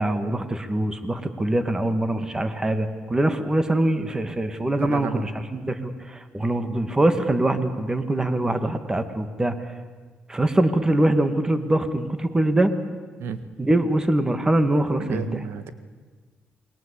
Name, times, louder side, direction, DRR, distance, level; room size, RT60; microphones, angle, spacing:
voice 1, 0.0-9.7 10.3-12.7 13.6-15.4, right 1 dB, 15° right, 9 dB, 2.1 m, -23 dB
voice 2, 4.8-5.3 13.2-13.4 15.1-15.7, right 6 dB, 85° right, 11 dB, 1.7 m, -31 dB
28.5 x 22.0 x 8.5 m, 1.4 s
cardioid pair, 105°, 4 cm